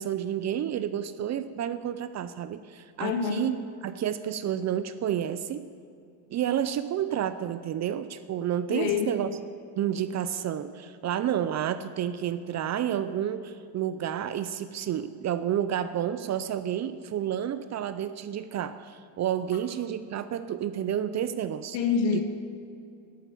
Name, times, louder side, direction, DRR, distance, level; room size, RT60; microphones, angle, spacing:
voice 1, 0.0-3.5 3.8-5.7 6.3-9.3 9.8-21.8 22.1-22.2, right 10 dB, 35° right, 13 dB, 0.5 m, -30 dB
voice 2, 3.0-3.6 8.7-9.2 21.7-22.2, left 6 dB, 85° left, 4 dB, 2.0 m, -26 dB
11.5 x 8.9 x 8.4 m, 2.4 s
supercardioid pair, 110°, 49 cm